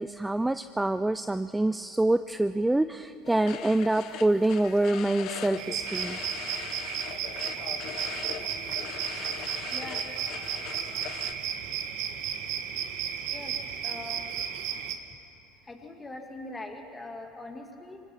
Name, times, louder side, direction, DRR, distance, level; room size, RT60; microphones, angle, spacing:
voice 1, 0.0-6.2, right 2 dB, 10° right, 11 dB, 0.4 m, -26 dB
sound 1, 3.2-11.3, left 9 dB, 60° left, 1.1 m, -40 dB
sound 2, 5.6-14.9, right 9 dB, 65° right, 1.6 m, -34 dB
voice 2, 9.7-10.1 13.3-13.5 13.8-14.3 15.6-18.0, left 2 dB, 15° left, 3 dB, 2.5 m, -42 dB
24.5 x 18.5 x 5.7 m, 2.8 s
supercardioid pair, 100°, 0 cm